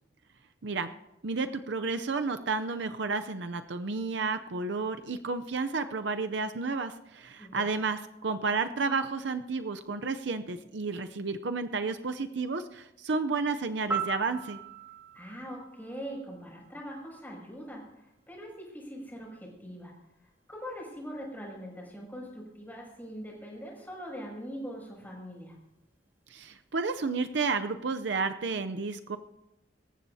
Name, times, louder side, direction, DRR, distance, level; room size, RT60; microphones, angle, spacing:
voice 1, 1.2-14.6 26.3-29.2, right 4 dB, 65° right, 8 dB, 0.6 m, -31 dB
voice 2, 7.4-7.8 15.1-19.9 20.2-25.5, equal, 10° left, -3 dB, 6.4 m, -42 dB
Piano, 13.9-16.8 25.0-25.2, right 4 dB, 10° right, 1.9 m, -38 dB
25.5 x 14.5 x 2.8 m, 0.92 s
head